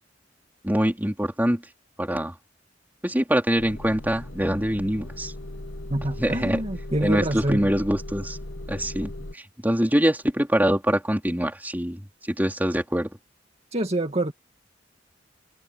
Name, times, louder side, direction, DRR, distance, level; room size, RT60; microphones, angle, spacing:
voice 1, 0.6-1.6 2.0-2.3 3.0-5.3 6.2-6.6 7.0-8.4 8.7-12.0 12.3-13.1, equal, 10° right, 4.0 m, -24 dB
Motor vehicle (road) / Engine starting / Idling, 3.6-9.3, left 1 dB, 85° left, 2.7 m, -37 dB
voice 2, 5.9-7.7 13.7-14.3, right 1 dB, 35° right, 2.2 m, -26 dB
head